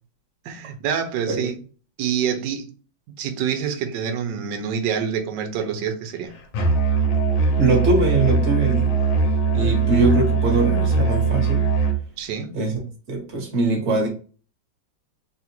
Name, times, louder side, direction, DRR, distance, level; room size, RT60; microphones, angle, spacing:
voice 1, 0.4-1.6 2.0-2.7 3.2-6.3 12.2-12.5, right 7 dB, 70° right, 1.2 m, -26 dB
Musical instrument, 6.5-12.0, right 4 dB, 75° left, 1.4 m, -20 dB
voice 2, 7.6-8.9 9.5-11.6 12.5-14.1, right 2 dB, 40° right, 1.3 m, -22 dB
3.7 x 2.4 x 2.8 m
omnidirectional pair, 2.3 m